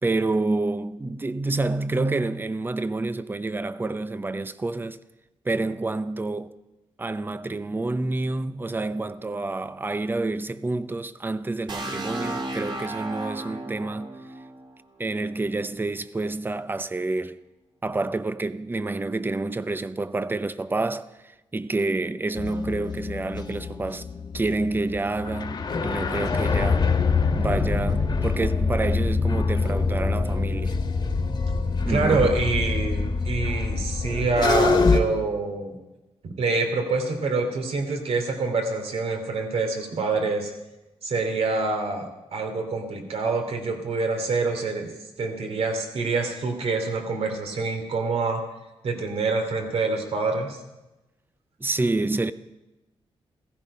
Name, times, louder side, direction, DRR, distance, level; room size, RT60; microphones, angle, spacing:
voice 1, 0.0-5.0 5.4-6.6 7.0-14.1 15.0-17.4 17.8-24.1 24.3-26.9 27.4-30.8 31.8-32.4 51.6-52.3, right 2 dB, 20° right, 0.7 m, -28 dB
sound 1, 11.7-15.5, right 2 dB, 45° right, 2.2 m, -34 dB
sound 2, 22.3-35.0, left 4 dB, 45° left, 1.7 m, -25 dB
voice 2, 31.9-35.7 36.2-40.5 41.0-44.9 45.2-48.4 48.8-50.6, right 3 dB, 70° right, 2.9 m, -26 dB
16.5 x 15.5 x 5.5 m
wide cardioid pair, 115°, 11 cm